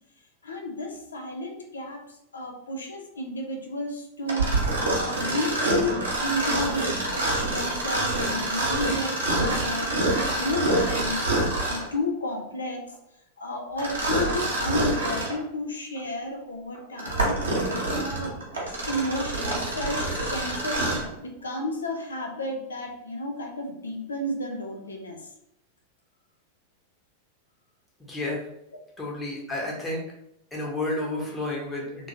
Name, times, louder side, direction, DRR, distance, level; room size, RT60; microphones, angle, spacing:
voice 1, 0.4-4.5 4.9-11.2 11.7-12.9 13.4-17.4 17.9-25.3, left 1 dB, 70° left, 3 dB, 0.5 m, -32 dB
Mechanisms, 4.3-11.9 13.8-15.4 16.0-16.1 16.7-21.1, right 2 dB, 70° right, 0.9 m, -26 dB
voice 2, 28.0-28.4 29.0-30.0 30.5-32.1, left 2 dB, 10° left, -4 dB, 1.0 m, -31 dB
2.9 x 2.6 x 2.7 m, 0.81 s
figure-of-eight pair, 90°, 0 cm